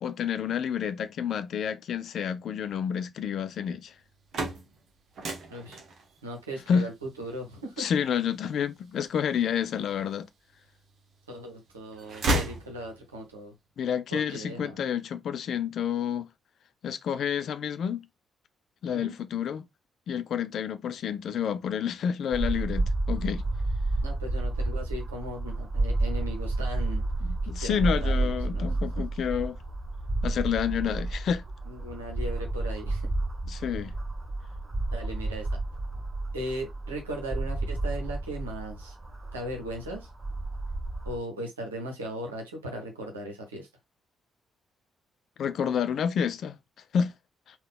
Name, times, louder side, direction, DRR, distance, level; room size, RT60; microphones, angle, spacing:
voice 1, 0.0-3.9 6.7-6.9 7.8-10.3 13.8-16.3 16.8-18.1 18.8-19.7 20.1-23.4 27.5-29.6 30.2-31.4 33.5-33.9 45.4-46.6 46.9-47.1, left 8 dB, 55° left, 0.4 m, -29 dB
sound 1, 4.0-10.0 10.5-11.4 11.7-13.3, right 1 dB, 50° right, 0.9 m, -34 dB
voice 2, 6.2-7.9 11.3-13.5 14.1-14.8 18.9-19.2 24.0-27.0 27.4-28.6 29.0-29.1 31.6-33.1 34.9-35.5 36.3-39.0 39.3-40.1 41.0-43.7, right 1 dB, 80° right, 0.8 m, -38 dB
sound 2, 22.3-41.2, right 2 dB, 30° right, 1.0 m, -31 dB
3.7 x 2.4 x 3.5 m
figure-of-eight pair, 40°, 0 cm